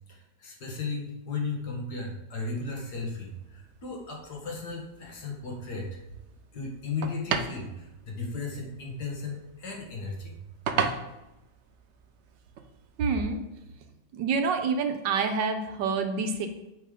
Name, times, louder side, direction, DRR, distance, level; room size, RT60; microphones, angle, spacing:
voice 1, 0.1-5.9 6.5-10.3, left 4 dB, 65° left, 0 dB, 2.2 m, -35 dB
sound 1, 2.5-13.4, right 6 dB, 70° right, 0.6 m, -38 dB
voice 2, 13.0-13.4 14.1-16.5, right 5 dB, 85° right, 5 dB, 1.4 m, -27 dB
7.0 x 5.4 x 5.1 m, 0.94 s
omnidirectional pair, 1.9 m